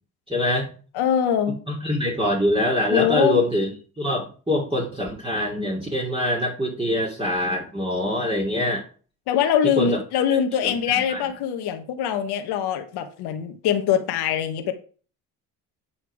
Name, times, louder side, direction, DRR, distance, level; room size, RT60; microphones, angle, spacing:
voice 1, 0.3-0.7 1.7-8.8 9.8-10.0 10.6-11.2, left 1 dB, 15° right, -3 dB, 2.7 m, -24 dB
voice 2, 0.9-1.6 2.9-3.4 9.3-14.7, left 9 dB, 75° left, 6 dB, 1.4 m, -23 dB
8.9 x 5.8 x 4.8 m, 0.39 s
supercardioid pair, 70°, 39 cm